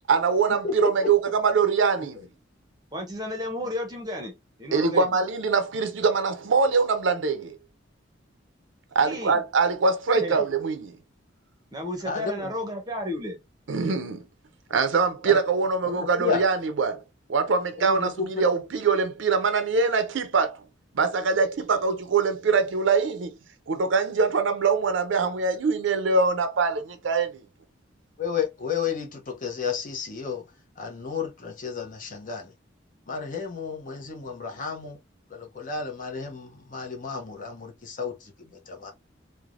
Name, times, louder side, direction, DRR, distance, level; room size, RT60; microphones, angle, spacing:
voice 1, 0.1-2.2 4.7-7.6 8.9-10.9 13.7-14.2 14.7-17.0 17.3-20.6 20.9-23.4 23.7-27.4, right 4 dB, 75° right, 0.5 m, -23 dB
voice 2, 0.6-1.1 2.0-2.1 10.1-10.2 12.0-12.5 15.2-15.4 15.8-16.4 17.8-18.5 28.2-30.4 30.8-32.5 33.1-35.0 35.3-38.9, left 6 dB, 45° left, 0.7 m, -32 dB
voice 3, 2.9-4.3 4.6-5.2 9.0-9.4 10.2-10.4 11.7-13.4, left 1 dB, 20° right, 0.7 m, -32 dB
3.2 x 2.1 x 2.4 m
head